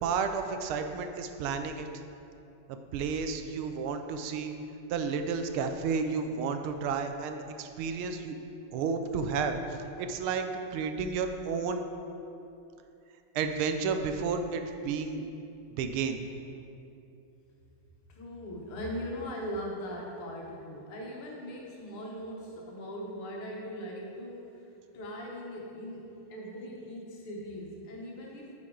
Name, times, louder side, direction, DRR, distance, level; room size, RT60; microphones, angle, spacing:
voice 1, 0.0-1.9 2.7-4.5 4.9-8.3 8.7-11.8 13.3-15.2 15.7-16.2, right 5 dB, 80° right, 7 dB, 1.4 m, -32 dB
voice 2, 18.1-24.5 24.9-28.5, equal, 80° left, -2 dB, 2.1 m, -40 dB
9.4 x 5.8 x 3.8 m, 2.7 s
omnidirectional pair, 2.4 m